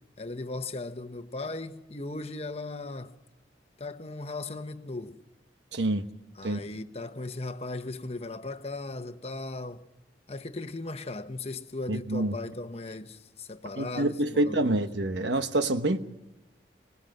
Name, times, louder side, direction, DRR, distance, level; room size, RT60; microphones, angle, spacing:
voice 1, 0.2-3.1 3.8-5.2 6.4-9.8 10.3-14.8, left 2 dB, 35° left, 1.0 m, -37 dB
voice 2, 5.7-6.1 6.4-6.6 11.9-12.4 13.7-16.0, right 1 dB, 90° right, 1.2 m, -27 dB
26.0 x 18.0 x 7.7 m
head